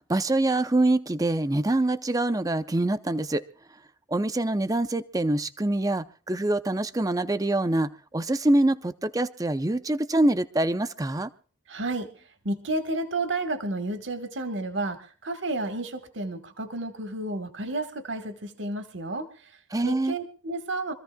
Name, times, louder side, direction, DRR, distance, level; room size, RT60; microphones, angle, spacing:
voice 1, 0.1-3.4 4.1-11.3 19.7-20.1, right 1 dB, 20° right, 0.6 m, -25 dB
voice 2, 11.7-12.1 12.4-19.5 19.8-20.9, right 2 dB, 70° right, 1.4 m, -31 dB
26.0 x 14.5 x 2.3 m
head